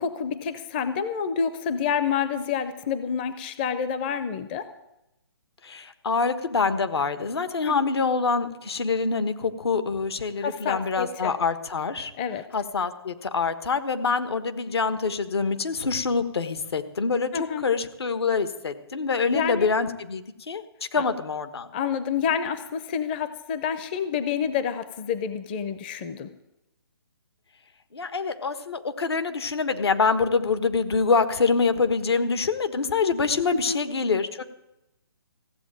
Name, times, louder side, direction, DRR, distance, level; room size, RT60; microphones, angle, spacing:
voice 1, 0.0-4.7 7.6-7.7 10.4-11.3 12.2-12.5 17.3-17.6 19.3-19.7 20.9-21.1 21.7-26.3 33.5-33.8, left 7 dB, 25° left, 12 dB, 0.6 m, -28 dB
voice 2, 5.6-12.1 12.5-20.6 20.9-21.7 27.9-34.4, left 4 dB, 75° left, 11 dB, 1.4 m, -25 dB
15.5 x 7.8 x 9.0 m, 0.91 s
hypercardioid pair, 160°, 13 cm